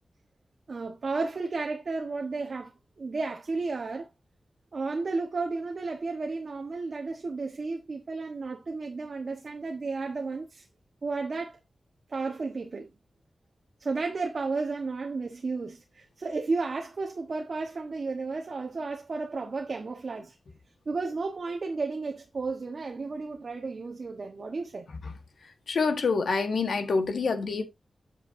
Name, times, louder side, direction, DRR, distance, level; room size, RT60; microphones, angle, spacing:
voice 1, 0.7-4.1 4.7-10.7 11.0-11.6 12.1-12.9 13.8-20.4 20.8-24.9, right 3 dB, 45° right, 1.2 m, -33 dB
voice 2, 25.7-27.6, left 4 dB, 75° left, 1.5 m, -26 dB
8.3 x 8.1 x 2.7 m
wide cardioid pair, 170°, 0 cm